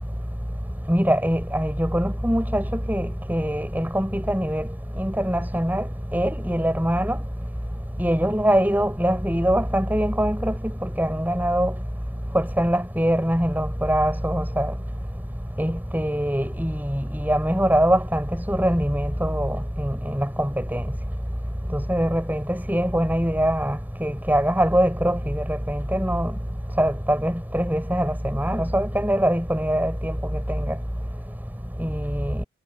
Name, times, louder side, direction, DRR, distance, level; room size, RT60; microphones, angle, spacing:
voice 1, 0.9-4.6 5.0-5.8 6.1-7.2 8.0-10.5 11.0-11.7 12.3-14.7 15.6-20.8 21.7-26.3 26.8-30.2 30.5-30.7 31.8-32.4, equal, 10° right, 6.1 m, -23 dB
head